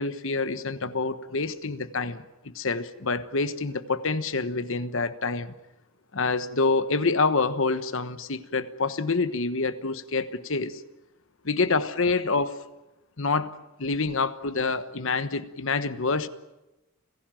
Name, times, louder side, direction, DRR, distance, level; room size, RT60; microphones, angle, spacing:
voice 1, 0.0-5.5 6.1-10.8 11.4-12.6 13.2-13.5 13.8-16.3, left 3 dB, 65° left, 1.2 m, -27 dB
29.5 x 17.0 x 9.1 m
head